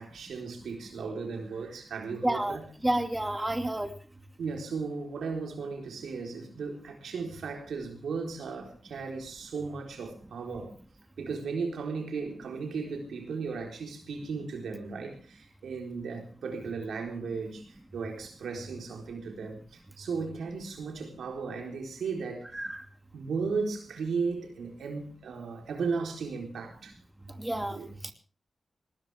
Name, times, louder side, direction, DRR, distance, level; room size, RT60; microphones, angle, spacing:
voice 1, 0.0-2.6 4.4-10.7 11.2-22.6 23.1-26.9 27.7-28.1, right 4 dB, 90° right, 4.1 m, -36 dB
voice 2, 2.2-2.6 2.8-3.9 22.5-22.8 27.4-27.8 28.0-28.1, right 1 dB, 15° right, 2.4 m, -29 dB
19.5 x 19.0 x 3.5 m
cardioid pair, 50°, 0 cm